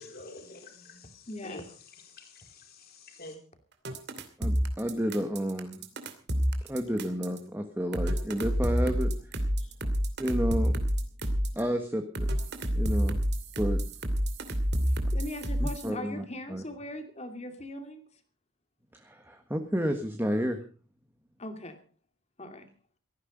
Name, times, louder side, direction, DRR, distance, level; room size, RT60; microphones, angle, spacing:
voice 1, 0.0-3.4, left 2 dB, 45° left, 4.2 m, -48 dB
voice 2, 1.3-1.7 9.6-9.9 15.1-18.0 21.4-21.8 22.4-22.7, left 1 dB, 30° left, 2.6 m, -40 dB
sound 1, 3.8-7.4 7.9-11.6 12.1-15.9, equal, 50° right, 2.6 m, -28 dB
voice 3, 4.4-5.8 6.7-9.1 10.2-10.8 11.5-12.3 12.7-13.2 13.6-13.8 15.6-16.6 18.9-20.6, equal, 10° right, 1.5 m, -31 dB
17.5 x 14.5 x 5.3 m
head